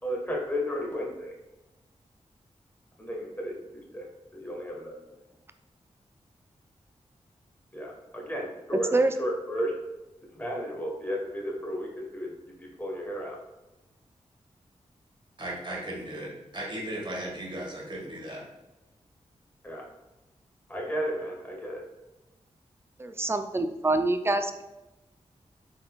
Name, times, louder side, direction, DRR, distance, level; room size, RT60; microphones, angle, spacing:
voice 1, 0.0-1.3 3.0-4.1 4.3-4.9 7.7-9.7 10.3-13.4 19.6-19.8 20.7-21.8, equal, 15° left, -2 dB, 1.3 m, -33 dB
voice 2, 15.4-18.4, right 1 dB, 40° right, -2 dB, 1.4 m, -36 dB
voice 3, 23.0-24.6, right 2 dB, 20° right, 9 dB, 0.4 m, -25 dB
3.8 x 3.8 x 2.3 m, 1.0 s
cardioid pair, 40°, 13 cm